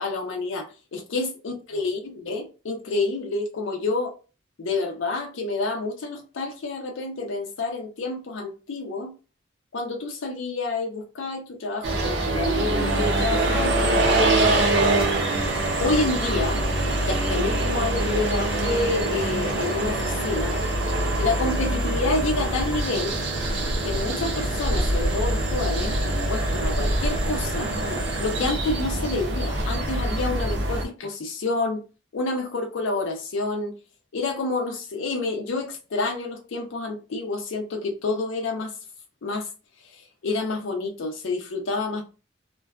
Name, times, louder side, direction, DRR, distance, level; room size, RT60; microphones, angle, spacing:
voice 1, 0.0-4.1 4.6-9.1 9.7-14.8 15.8-16.6 17.0-20.6 21.2-23.2 23.8-25.9 26.3-31.8 32.1-33.7 34.1-38.7 39.2-39.5 39.9-42.0, left 3 dB, 75° left, 0.5 m, -28 dB
sound 1, 11.8-30.8, right 1 dB, 60° right, 0.5 m, -24 dB
sound 2, 12.9-28.5, right 2 dB, 5° right, 0.5 m, -36 dB
2.5 x 2.2 x 2.2 m
head